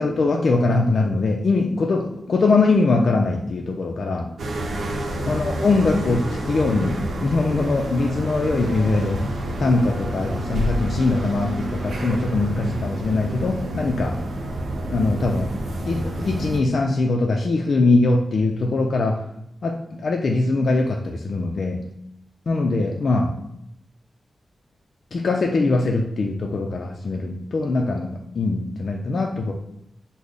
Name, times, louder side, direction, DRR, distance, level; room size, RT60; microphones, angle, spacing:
voice 1, 0.0-4.3 5.3-9.3 9.6-14.2 14.9-15.6 15.9-19.2 19.6-21.9 22.5-23.4 25.1-29.5, left 3 dB, 65° left, 1 dB, 0.3 m, -22 dB
sound 1, 4.4-16.6, right 1 dB, 85° right, 0.5 m, -28 dB
3.3 x 2.0 x 3.8 m, 0.76 s
wide cardioid pair, 90°, 0 cm